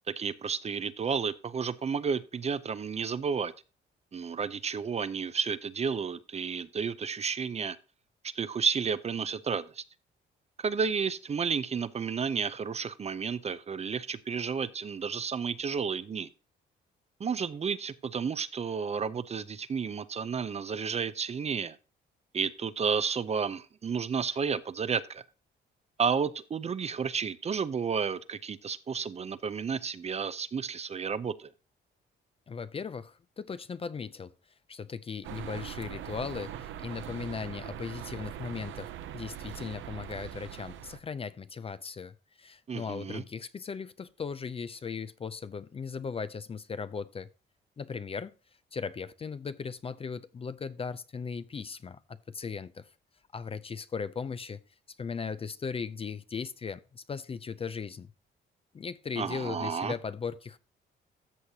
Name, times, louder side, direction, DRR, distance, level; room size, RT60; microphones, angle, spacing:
voice 1, 0.1-3.5 4.1-7.8 8.2-9.8 10.6-16.3 17.2-21.8 22.3-25.2 26.0-31.5 42.7-43.2 59.2-59.9, right 6 dB, 35° right, 0.5 m, -32 dB
voice 2, 32.5-34.3 34.7-47.3 47.8-48.3 48.7-52.9 53.3-54.6 55.0-58.1 58.7-60.6, left 5 dB, 30° left, 0.4 m, -38 dB
sound 1, 35.2-41.0, right 11 dB, 75° right, 0.6 m, -41 dB
14.0 x 6.4 x 2.8 m
cardioid pair, 90°, 20 cm